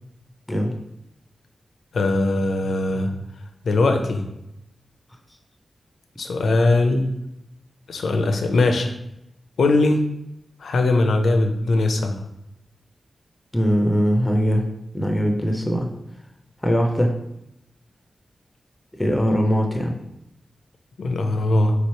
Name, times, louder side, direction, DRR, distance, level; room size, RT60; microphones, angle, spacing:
voice 1, 1.9-3.1 3.6-4.3 6.2-7.1 7.9-8.9 9.6-10.0 10.6-12.2 21.0-21.7, left 2 dB, 80° left, 5 dB, 0.5 m, -20 dB
voice 2, 13.5-14.7 14.9-15.9 16.6-17.1 18.9-20.0, equal, 10° left, 1 dB, 0.4 m, -21 dB
3.2 x 3.0 x 4.3 m, 0.83 s
wide cardioid pair, 175°, 0 cm